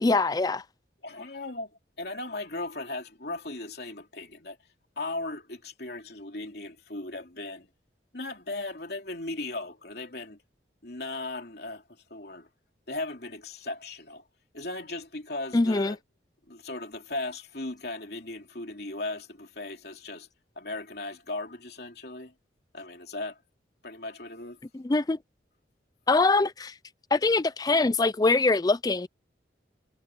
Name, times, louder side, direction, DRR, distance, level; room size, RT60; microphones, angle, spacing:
voice 1, 0.0-0.6 15.5-16.0 24.7-25.2 26.1-26.7 27.1-29.1, left 3 dB, 20° left, 0.4 m, -23 dB
voice 2, 1.0-4.6 5.0-7.7 8.1-10.4 10.8-12.5 12.9-14.2 14.5-16.0 16.5-20.3 20.6-22.3 22.7-23.4 23.8-24.6, left 2 dB, 60° left, 3.2 m, -37 dB
head